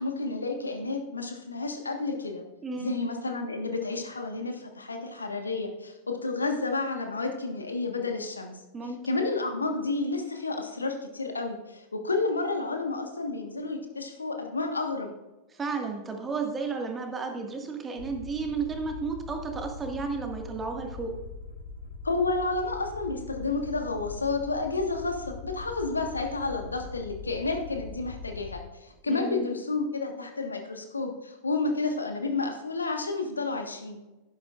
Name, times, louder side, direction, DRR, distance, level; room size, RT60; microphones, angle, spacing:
voice 1, 0.0-2.4 2.8-8.6 9.0-15.1 22.0-34.0, left 3 dB, 80° left, 4 dB, 1.4 m, -31 dB
voice 2, 2.6-3.0 8.7-9.0 15.5-21.1 29.1-29.6, right 4 dB, 20° right, 3 dB, 1.8 m, -33 dB
Aircraft, 18.0-28.6, left 4 dB, 80° right, 1.6 m, -42 dB
11.0 x 11.0 x 2.5 m, 1.1 s
figure-of-eight pair, 90°, 0 cm